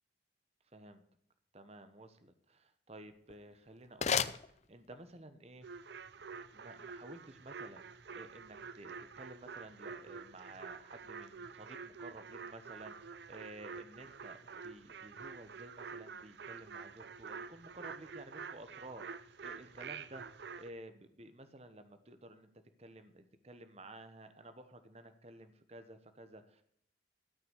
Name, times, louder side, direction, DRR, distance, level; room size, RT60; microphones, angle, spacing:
voice 1, 1.5-5.7 6.5-20.2 20.6-22.5 22.8-26.6, right 1 dB, 35° right, 9 dB, 1.0 m, -53 dB
sound 1, 3.1-5.2, left 7 dB, 40° left, 0.5 m, -37 dB
sound 2, 5.6-20.7, right 5 dB, 70° right, 0.6 m, -48 dB
13.0 x 5.7 x 8.1 m, 0.67 s
head